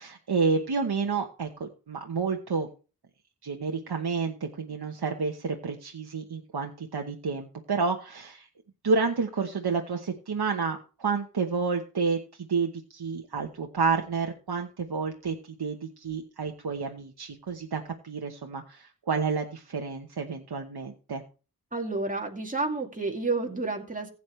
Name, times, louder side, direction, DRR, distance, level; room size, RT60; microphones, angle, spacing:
voice 1, 0.0-2.7 3.4-8.5 8.8-21.2, right 5 dB, 85° right, 3 dB, 1.0 m, -30 dB
voice 2, 21.7-24.1, right 3 dB, 20° right, 0 dB, 2.4 m, -30 dB
15.5 x 8.4 x 3.2 m, 0.35 s
wide cardioid pair, 40°, 37 cm